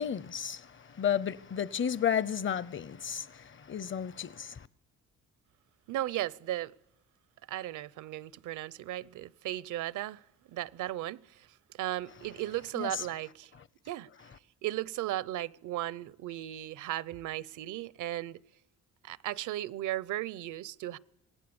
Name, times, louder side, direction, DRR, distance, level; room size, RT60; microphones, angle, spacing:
voice 1, 0.0-4.7 12.8-13.1, left 8 dB, 40° left, 0.8 m, -33 dB
voice 2, 5.9-6.7 7.5-10.2 10.5-13.5 13.9-14.1 14.6-18.4 19.0-21.0, right 14 dB, 85° right, 0.8 m, -36 dB
26.5 x 19.0 x 7.1 m
cardioid pair, 90°, 30 cm